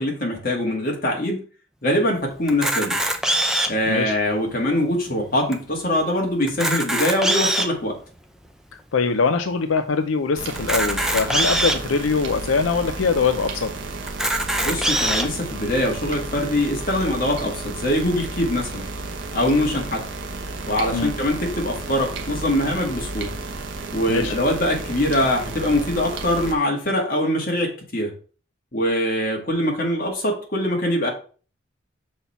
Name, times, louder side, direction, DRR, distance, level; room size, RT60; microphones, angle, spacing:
voice 1, 0.0-1.4 1.8-3.0 3.7-8.0 14.6-18.8 19.3-20.0 20.7-23.3 23.9-28.1 28.7-31.1, left 1 dB, 45° left, 0 dB, 1.9 m, -23 dB
Camera, 2.5-3.9 4.5-4.6 4.8-5.0 5.5-5.6 6.4-7.8 8.4-8.5 10.5-11.8 12.5-12.6 12.9-13.0 14.1-15.2, right 1 dB, 5° right, 0.6 m, -22 dB
voice 2, 3.9-4.2 8.9-13.7 20.9-21.1 24.1-24.4, left 5 dB, 85° left, 7 dB, 0.5 m, -22 dB
sound 1, 10.3-26.5, right 3 dB, 65° right, 1.0 m, -32 dB
5.7 x 4.3 x 5.5 m, 0.39 s
head